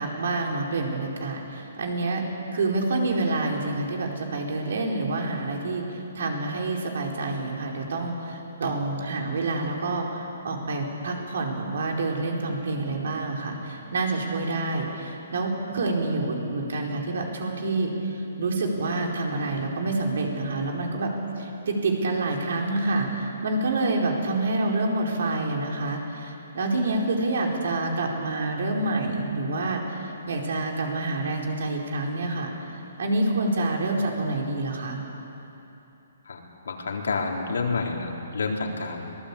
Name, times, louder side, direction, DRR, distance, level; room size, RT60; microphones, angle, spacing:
voice 1, 0.0-2.2 2.5-5.8 6.1-32.5 33.0-35.0, right 2 dB, 60° right, 0 dB, 4.6 m, -27 dB
voice 2, 36.3-39.0, left 4 dB, 85° left, 0 dB, 4.1 m, -29 dB
25.5 x 19.0 x 8.6 m, 3.0 s
hypercardioid pair, 170°, 0 cm